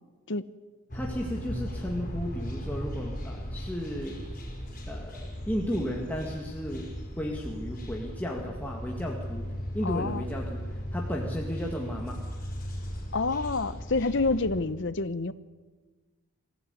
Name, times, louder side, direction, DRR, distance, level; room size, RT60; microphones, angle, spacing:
sound 1, 0.9-14.6, equal, 35° left, 5.1 m, -37 dB
voice 1, 0.9-4.2 4.9-9.5 9.7-12.2, equal, 5° left, -1 dB, 1.9 m, -34 dB
voice 2, 9.8-10.3 13.1-15.3, left 3 dB, 55° left, 15 dB, 0.9 m, -28 dB
24.0 x 15.5 x 9.7 m, 1.3 s
head